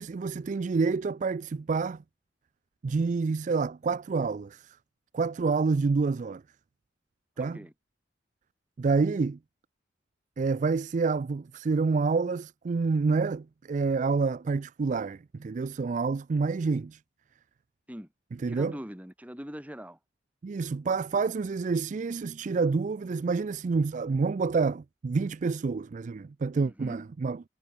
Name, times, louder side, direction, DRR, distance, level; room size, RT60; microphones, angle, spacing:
voice 1, 0.0-2.0 2.8-4.8 5.1-6.4 7.4-7.6 8.8-9.4 10.4-17.0 18.4-18.7 20.4-27.4, right 4 dB, 40° right, 0.4 m, -28 dB
voice 2, 7.4-7.7 17.9-18.1 18.5-20.0 26.6-27.0, equal, 10° right, 2.7 m, -42 dB
head